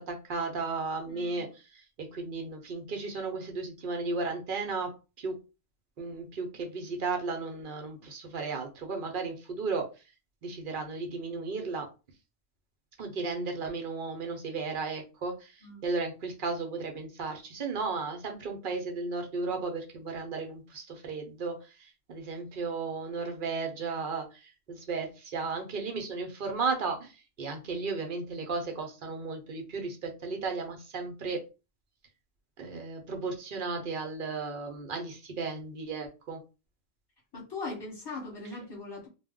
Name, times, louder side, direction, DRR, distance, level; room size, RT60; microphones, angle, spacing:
voice 1, 0.0-1.8 2.1-4.9 5.2-5.3 6.0-9.8 10.4-11.9 13.0-27.1 27.4-31.4 32.6-36.4, right 4 dB, 55° right, 0.7 m, -34 dB
voice 2, 1.1-1.5 15.6-15.9 37.3-39.1, left 3 dB, 20° left, 1.0 m, -40 dB
2.2 x 2.1 x 3.6 m
omnidirectional pair, 1.3 m